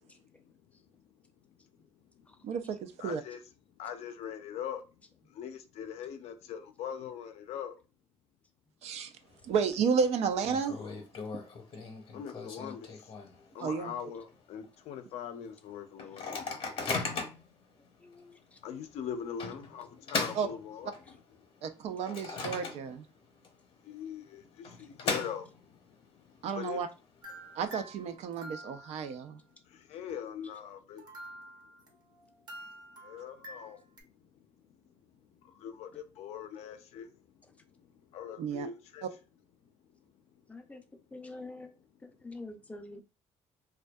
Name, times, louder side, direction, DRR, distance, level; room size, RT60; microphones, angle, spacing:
voice 1, 2.4-3.2 8.8-9.1 9.4-10.8 13.6-13.9 17.1-17.2 20.3-20.5 21.6-23.0 26.4-26.9 27.6-29.4 38.4-38.7 39.0-39.1, right 6 dB, 70° right, 0.4 m, -32 dB
voice 2, 3.0-3.4 3.8-4.8 5.4-7.8 12.1-12.9 13.5-16.4 18.6-20.9 23.9-25.4 26.6-26.8 29.9-31.0 33.0-33.8 35.6-37.1 38.1-39.0, left 8 dB, 70° left, 0.5 m, -41 dB
Microwave oven, 9.2-9.7 10.0-10.1 10.4-13.5 14.0-14.1 14.3-14.6 15.2-15.3 16.0-17.5 18.1-18.3 19.4-21.2 21.7-23.2 23.4-23.5 24.4-25.8, left 4 dB, 50° left, 0.8 m, -37 dB
voice 3, 18.0-18.6 24.8-24.9 30.4-30.5 35.9-36.0 40.5-40.8 41.1-41.7 42.0-43.0, left 2 dB, 10° left, 0.4 m, -47 dB
sound 1, 27.2-29.1 31.0-34.0, right 1 dB, 35° right, 0.7 m, -48 dB
2.6 x 2.2 x 2.2 m
cardioid pair, 115°, 11 cm